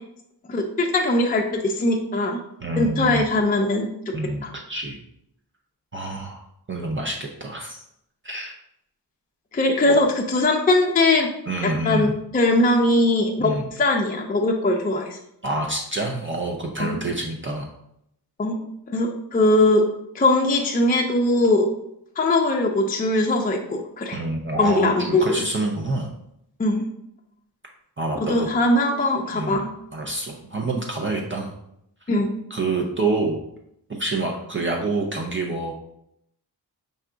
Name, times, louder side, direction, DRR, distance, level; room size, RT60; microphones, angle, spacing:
voice 1, 0.5-2.4 2.8-3.9 4.4-4.5 9.5-11.3 11.8-13.5 13.8-15.2 16.8-17.0 18.4-18.6 18.9-19.8 20.1-21.7 22.2-24.2 24.6-25.2 26.6-26.8 28.3-29.7 32.1-32.3, left 2 dB, 20° left, 1 dB, 0.4 m, -20 dB
voice 2, 2.6-3.3 4.1-5.0 5.9-6.4 6.7-7.8 8.2-8.6 9.9-10.0 11.5-12.1 13.4-13.7 15.4-17.7 24.1-24.9 25.2-26.1 28.0-28.5 29.3-31.5 32.5-33.4 33.9-35.7, right 2 dB, 30° right, -1 dB, 0.6 m, -27 dB
5.4 x 2.3 x 3.8 m, 0.76 s
wide cardioid pair, 100°, 40 cm